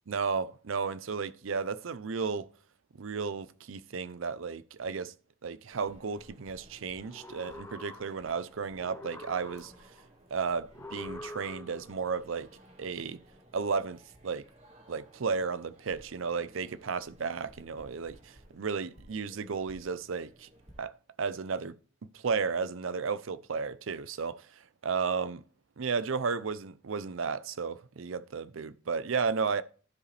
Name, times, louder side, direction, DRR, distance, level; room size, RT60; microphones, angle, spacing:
voice 1, 0.1-2.5 3.0-5.1 5.4-9.7 10.3-12.5 12.8-13.2 13.5-14.4 14.9-20.5 20.8-20.9 21.2-21.8 22.1-25.4 25.8-29.6, right 5 dB, 80° right, 0.5 m, -33 dB
sound 1, 5.7-20.8, equal, 35° right, 1.8 m, -57 dB
sound 2, 7.0-8.4 8.8-10.0 10.7-12.0, left 2 dB, 15° left, 0.5 m, -46 dB
13.5 x 4.9 x 3.3 m
head